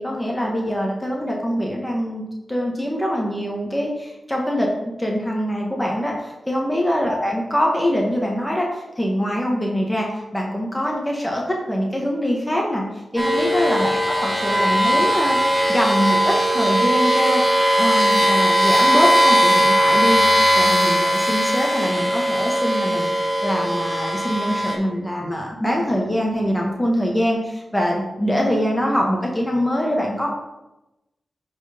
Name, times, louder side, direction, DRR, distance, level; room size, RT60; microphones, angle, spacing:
voice 1, 0.0-4.7 5.0-15.4 15.7-17.4 17.8-30.3, equal, 10° left, -1 dB, 1.8 m, -23 dB
sound 1, 13.2-24.7, equal, 5° right, 2.8 m, -19 dB
9.5 x 4.7 x 5.3 m, 0.98 s
cardioid pair, 55°, 0 cm